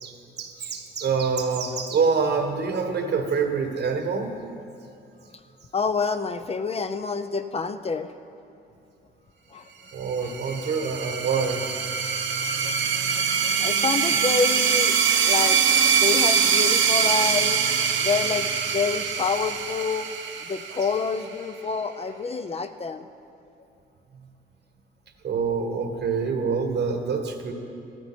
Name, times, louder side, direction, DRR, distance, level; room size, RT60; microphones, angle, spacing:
voice 1, 0.0-4.3 9.9-11.6 25.2-27.5, right 5 dB, 55° right, 5 dB, 1.4 m, -26 dB
voice 2, 5.7-8.1 9.5-9.7 10.2-10.6 10.9-11.0 11.6-11.7 12.1-15.0 15.3-15.6 16.0-17.6 18.0-20.1 20.4-23.1, left 5 dB, 30° left, 10 dB, 0.5 m, -28 dB
sound 1, 10.1-21.4, right 7 dB, 70° right, 1.0 m, -23 dB
13.5 x 13.0 x 4.4 m, 2.6 s
cardioid pair, 90°, 20 cm